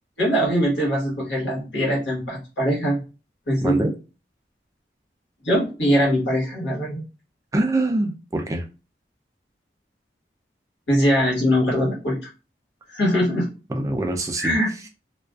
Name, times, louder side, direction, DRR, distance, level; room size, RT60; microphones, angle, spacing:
voice 1, 0.2-3.0 3.5-3.8 5.4-7.1 10.9-12.3 12.9-13.5 14.4-14.7, equal, 90° left, 1.2 m, -22 dB
voice 2, 3.6-3.9 7.5-8.6 13.7-14.5, right 2 dB, 20° right, 0.3 m, -24 dB
2.4 x 2.3 x 2.3 m
head